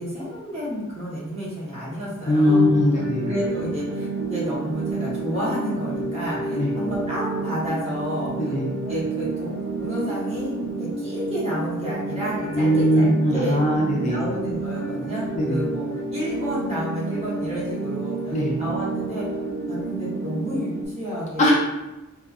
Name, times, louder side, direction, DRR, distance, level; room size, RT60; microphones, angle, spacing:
voice 1, 0.0-2.7 3.3-8.5 8.9-13.7 14.0-19.3 19.7-21.5, equal, 30° right, -8 dB, 1.0 m, -30 dB
voice 2, 2.3-3.3 6.6-6.7 8.5-8.7 12.5-14.2 15.4-15.6 18.3-18.6 21.4-21.5, equal, 30° left, -3 dB, 0.3 m, -20 dB
sound 1, 2.4-20.9, right 3 dB, 55° right, 0.9 m, -30 dB
2.5 x 2.3 x 2.3 m, 1.1 s
head